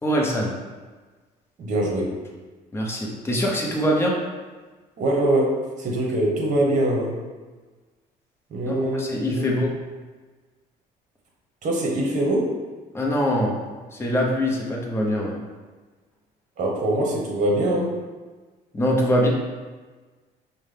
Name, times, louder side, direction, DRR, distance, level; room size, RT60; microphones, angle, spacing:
voice 1, 0.0-0.5 2.7-4.2 8.6-9.7 12.9-13.6 13.9-15.3 18.7-19.3, equal, 15° left, -2 dB, 0.8 m, -23 dB
voice 2, 1.6-2.1 5.0-7.2 8.5-9.0 9.3-9.5 11.6-12.5 16.6-17.9, right 1 dB, 45° right, -1 dB, 1.1 m, -23 dB
5.2 x 2.2 x 3.3 m, 1.3 s
cardioid pair, 110°, 17 cm